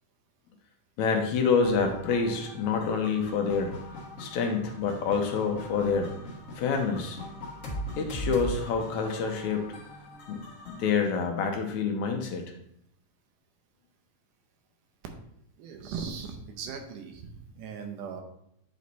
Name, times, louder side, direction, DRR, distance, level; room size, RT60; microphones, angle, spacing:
voice 1, 1.0-3.8 4.2-6.1 6.6-7.2 8.0-9.7 10.3-12.4, left 5 dB, 75° left, 3 dB, 2.0 m, -27 dB
sound 1, 1.6-10.9, equal, 45° left, 1.0 m, -40 dB
voice 2, 15.6-18.2, right 6 dB, 85° right, 4 dB, 2.4 m, -39 dB
9.2 x 3.2 x 4.0 m, 0.74 s
omnidirectional pair, 3.6 m